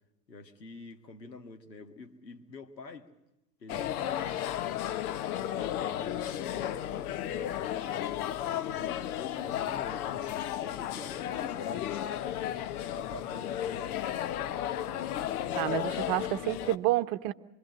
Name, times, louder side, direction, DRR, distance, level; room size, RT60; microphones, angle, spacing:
voice 1, 0.3-3.1 3.6-4.4 5.5-12.3 12.9-14.0, left 3 dB, 90° left, 1.7 m, -47 dB
sound 1, 3.7-16.8, left 11 dB, 65° left, 1.1 m, -34 dB
voice 2, 15.5-17.3, right 17 dB, 50° right, 1.0 m, -29 dB
26.0 x 22.0 x 7.7 m
figure-of-eight pair, 75°, 49 cm